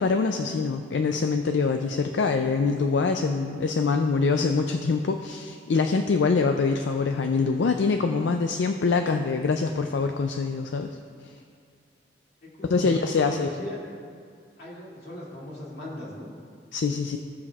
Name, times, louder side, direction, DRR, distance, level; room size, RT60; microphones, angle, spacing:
voice 1, 0.0-10.9 12.7-13.5 16.7-17.2, left 4 dB, 80° left, 6 dB, 0.4 m, -24 dB
voice 2, 12.4-13.8 14.6-16.3, left 1 dB, 60° left, -6 dB, 2.5 m, -39 dB
16.5 x 7.1 x 2.4 m, 2.2 s
head